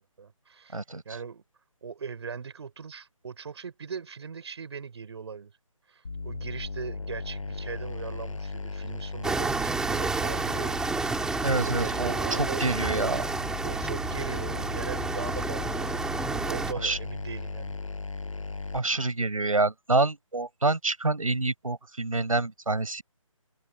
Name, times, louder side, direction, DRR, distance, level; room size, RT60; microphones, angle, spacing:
voice 1, 0.2-0.8 1.1-1.4 1.8-5.5 5.9-10.8 11.2-13.2 13.6-17.8, right 6 dB, 50° right, 5.6 m, -39 dB
sound 1, 6.0-18.8, left 3 dB, 70° left, 6.0 m, -37 dB
sound 2, 9.2-16.7, right 3 dB, 5° right, 3.6 m, -30 dB
voice 2, 11.4-13.2 16.8-17.0 18.7-23.0, right 3 dB, 80° right, 7.9 m, -27 dB
open air
figure-of-eight pair, 155°, 17 cm